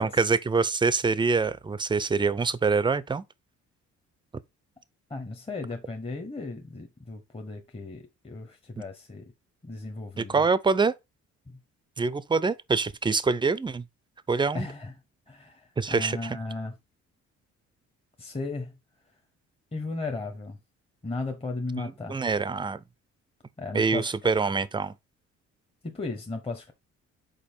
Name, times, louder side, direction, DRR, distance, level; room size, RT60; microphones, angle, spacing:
voice 1, 0.0-3.2 8.8-8.9 10.2-10.9 12.0-13.8 14.3-14.7 15.8-16.4 21.7-22.8 23.7-24.9, right 4 dB, 15° right, 0.5 m, -25 dB
voice 2, 5.1-9.3 9.6-10.4 11.5-11.6 14.5-14.9 15.3-16.7 18.2-18.7 19.7-20.6 21.0-22.2 23.6-24.2 25.8-26.7, left 3 dB, 20° left, 0.9 m, -35 dB
5.3 x 4.2 x 4.3 m
cardioid pair, 90°, 30 cm